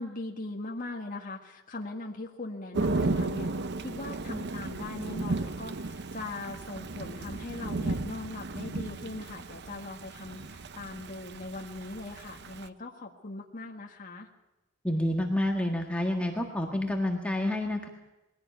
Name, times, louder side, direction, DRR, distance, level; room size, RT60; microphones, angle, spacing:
voice 1, 0.0-14.3, left 2 dB, 40° left, 0 dB, 1.8 m, -40 dB
Thunder / Rain, 2.7-12.7, right 2 dB, 55° right, 0.8 m, -34 dB
voice 2, 14.8-17.9, left 1 dB, 5° left, 1 dB, 1.7 m, -29 dB
21.5 x 16.5 x 8.3 m, 1.0 s
head